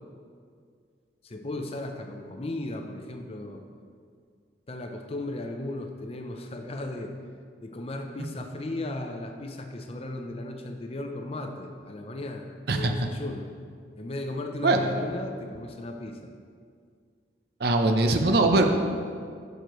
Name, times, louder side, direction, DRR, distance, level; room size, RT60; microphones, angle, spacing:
voice 1, 1.2-3.6 4.7-7.1 7.6-13.5 14.0-16.3, left 2 dB, 30° left, 4 dB, 0.5 m, -36 dB
voice 2, 17.6-18.6, right 2 dB, 55° right, 5 dB, 0.6 m, -21 dB
8.9 x 6.6 x 3.1 m, 2.1 s
head